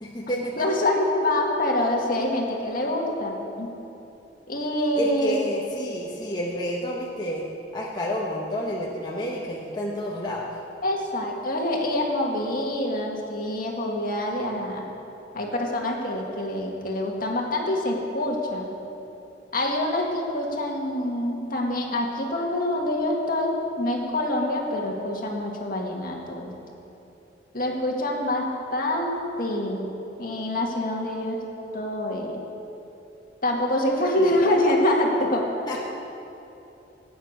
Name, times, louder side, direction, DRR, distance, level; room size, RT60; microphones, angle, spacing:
voice 1, 0.0-0.7 5.0-7.5 7.7-10.5 34.2-34.6 35.7-35.8, equal, 25° left, -4 dB, 1.2 m, -30 dB
voice 2, 0.6-3.7 4.5-5.4 10.8-14.8 15.3-18.7 19.5-26.5 27.5-29.9 30.2-31.4 31.7-32.4 33.4-35.5, left 1 dB, 50° left, 0 dB, 2.0 m, -26 dB
16.5 x 9.2 x 6.5 m, 2.9 s
head